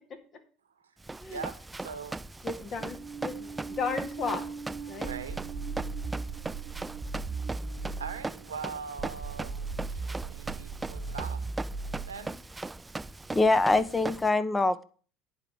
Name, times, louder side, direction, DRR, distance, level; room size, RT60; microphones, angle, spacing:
Run, 1.0-14.3, right 3 dB, 15° right, 0.3 m, -39 dB
voice 1, 1.3-2.2 5.0-5.4 8.0-11.4 12.1-12.4, right 5 dB, 85° right, 11 dB, 1.0 m, -41 dB
voice 2, 2.4-4.5 4.9-5.1, left 5 dB, 45° left, 6 dB, 2.1 m, -35 dB
sound 1, 2.8-9.2, right 6 dB, 80° left, 2.9 m, -43 dB
sound 2, 5.1-8.3 9.0-12.3, right 4 dB, 35° right, 0.7 m, -37 dB
voice 3, 13.3-14.8, left 2 dB, 15° left, 13 dB, 0.9 m, -24 dB
9.8 x 4.8 x 6.9 m, 0.39 s
hypercardioid pair, 70°, 0 cm